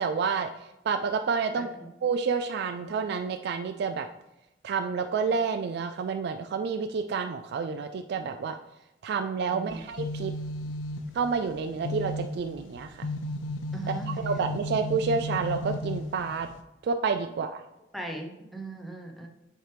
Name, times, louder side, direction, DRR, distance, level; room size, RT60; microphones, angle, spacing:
voice 1, 0.0-1.7 2.0-4.1 4.6-8.6 9.0-10.3 11.1-13.1 13.9-16.5 16.8-17.6, right 5 dB, 60° right, 7 dB, 0.3 m, -29 dB
voice 2, 1.6-1.9 9.5-9.8 13.7-14.1 17.9-19.3, right 2 dB, ahead, 1 dB, 0.8 m, -39 dB
sound 1, 9.7-16.6, left 1 dB, 90° left, 0.5 m, -35 dB
6.4 x 4.5 x 3.3 m, 0.94 s
head